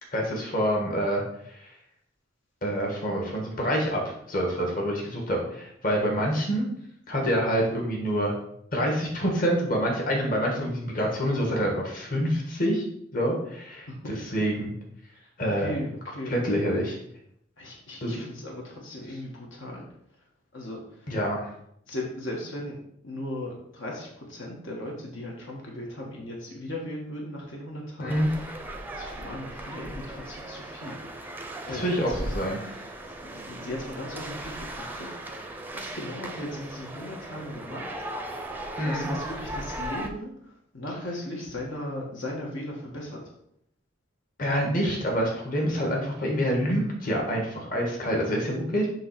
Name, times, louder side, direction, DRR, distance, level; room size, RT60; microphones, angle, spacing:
voice 1, 0.1-1.2 1.6-1.7 2.6-4.0 4.3-6.7 7.1-8.3 8.7-12.8 13.1-14.7 15.4-15.7 16.3-17.0 18.0-18.2 21.1-21.4 28.0-28.3 31.7-32.6 38.8-39.1 44.4-48.9, equal, 45° left, -1 dB, 1.7 m, -26 dB
voice 2, 15.6-16.4 17.6-19.8 20.5-21.1 21.9-22.8 23.0-28.6 28.9-31.0 31.7-32.4 33.2-37.9 38.8-43.2, left 1 dB, 70° left, -2 dB, 1.6 m, -37 dB
sound 1, 28.1-40.1, right 1 dB, 10° right, 0.6 m, -37 dB
7.6 x 3.2 x 5.9 m, 0.71 s
head